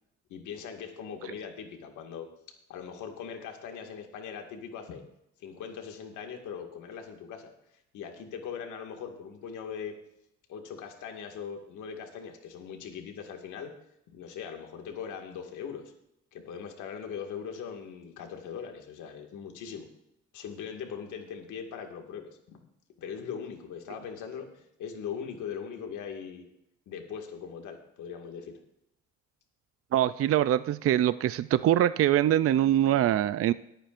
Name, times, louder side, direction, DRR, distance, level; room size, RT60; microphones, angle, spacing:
voice 1, 0.3-2.3 2.7-5.0 5.4-7.5 7.9-9.9 10.5-13.7 14.1-15.8 16.3-19.9 20.3-22.6 23.0-26.4 26.9-28.5, left 7 dB, 80° left, 3 dB, 2.1 m, -40 dB
voice 2, 29.9-33.5, right 12 dB, 50° right, 15 dB, 0.5 m, -23 dB
21.5 x 9.0 x 2.6 m, 0.81 s
cardioid pair, 85°, 30 cm